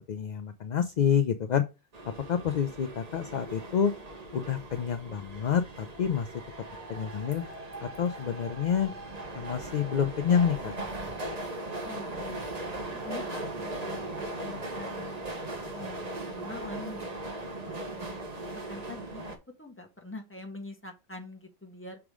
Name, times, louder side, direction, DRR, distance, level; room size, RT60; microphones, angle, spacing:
voice 1, 0.1-1.6 2.3-3.9 4.3-6.3 6.9-7.4 7.8-8.9 9.3-10.7, left 7 dB, 55° left, 0.5 m, -28 dB
sound 1, 1.9-19.4, right 2 dB, 35° right, 1.2 m, -39 dB
voice 2, 11.9-12.4 12.9-18.2 18.7-19.3 19.6-22.0, left 2 dB, 10° left, 1.3 m, -45 dB
6.1 x 3.6 x 4.7 m
omnidirectional pair, 1.2 m